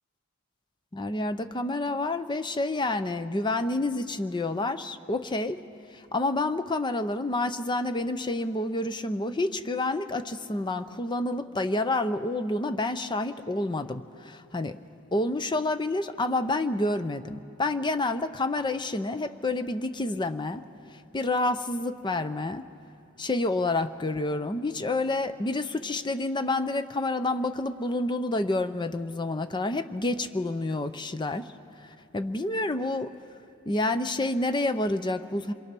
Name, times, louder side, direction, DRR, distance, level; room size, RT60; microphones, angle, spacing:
voice 1, 0.9-5.6 5.9-14.8 15.1-20.6 21.1-22.7 23.2-33.1 33.7-35.5, left 2 dB, 20° left, 11 dB, 0.6 m, -29 dB
27.0 x 22.5 x 6.0 m, 2.8 s
head